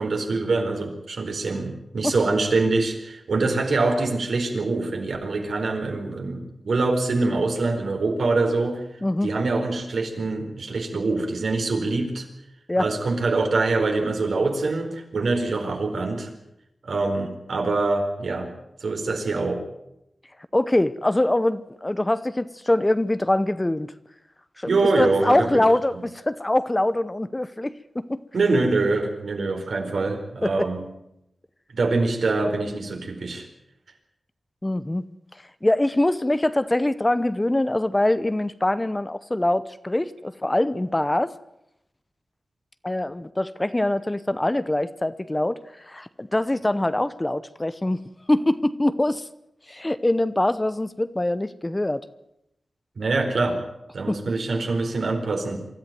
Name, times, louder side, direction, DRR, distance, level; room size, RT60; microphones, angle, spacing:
voice 1, 0.0-8.8 9.2-12.3 12.8-16.3 16.8-18.5 18.8-19.6 24.7-25.6 28.3-30.8 31.7-33.5 53.0-53.6 53.9-55.6, right 3 dB, 75° right, 3 dB, 4.6 m, -24 dB
voice 2, 9.0-9.3 12.7-12.9 20.5-23.9 24.6-24.7 25.0-28.2 30.4-30.7 34.6-35.0 35.6-41.3 42.8-48.0 48.3-49.2 49.7-52.0 54.1-54.2, left 1 dB, 15° left, 14 dB, 0.8 m, -23 dB
24.5 x 14.0 x 9.3 m, 0.83 s
wide cardioid pair, 125°, 0 cm